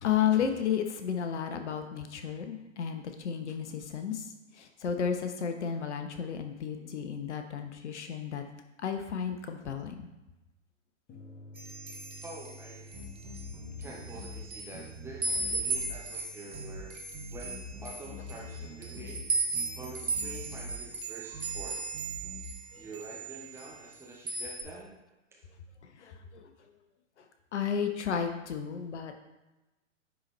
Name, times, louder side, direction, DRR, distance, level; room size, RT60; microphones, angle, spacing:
voice 1, 0.0-4.3 4.5-8.4 8.8-10.1 22.7-22.8 26.0-26.5 27.5-29.2, left 8 dB, 60° left, 6 dB, 1.0 m, -32 dB
sound 1, 11.1-24.0, equal, 25° left, 1.7 m, -55 dB
sound 2, 11.6-13.5 13.8-14.8 15.2-22.7 22.9-24.0 24.3-24.6, right 3 dB, 85° right, 1.2 m, -36 dB
voice 2, 12.2-12.9 13.8-17.0 17.3-19.3 19.7-21.8 22.8-24.9 25.3-25.5, right 2 dB, 5° right, -2 dB, 0.6 m, -47 dB
sound 3, 12.9-14.5 14.7-16.0 16.5-16.8 17.1-19.3 19.5-20.8 21.3-21.6 21.9-22.5, left 2 dB, 25° right, 1.8 m, -44 dB
9.7 x 4.1 x 3.1 m, 1.0 s
figure-of-eight pair, 110°, 39 cm